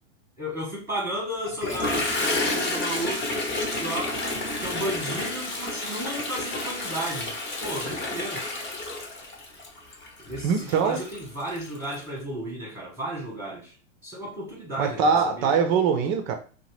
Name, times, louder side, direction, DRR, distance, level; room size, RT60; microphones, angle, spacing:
voice 1, 0.4-3.5 3.8-4.2 4.6-7.3 7.6-8.5 10.3-13.7 14.0-15.6, right 1 dB, 5° right, -5 dB, 0.9 m, -33 dB
Toilet flush, 1.5-12.0, left 2 dB, 30° left, 0.8 m, -30 dB
voice 2, 10.4-11.0 14.8-16.3, right 5 dB, 35° right, 5 dB, 0.4 m, -22 dB
2.8 x 2.0 x 3.1 m, 0.39 s
hypercardioid pair, 110°, 36 cm